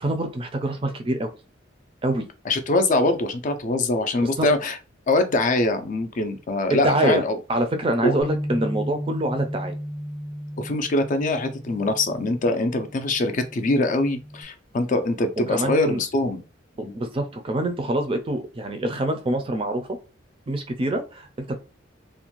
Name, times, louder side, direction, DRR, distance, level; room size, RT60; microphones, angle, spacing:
voice 1, 0.0-1.3 2.0-2.3 4.4-4.5 6.7-7.2 7.5-9.8 15.5-16.0 16.8-19.9 20.5-21.6, right 1 dB, 25° right, 6 dB, 0.4 m, -25 dB
voice 2, 2.5-4.8 5.1-7.4 8.0-8.2 10.6-16.4 16.8-16.9, left 2 dB, 40° left, 8 dB, 0.4 m, -23 dB
Bass guitar, 8.2-14.4, equal, 15° left, 0.7 m, -34 dB
2.5 x 2.1 x 2.9 m, 0.32 s
head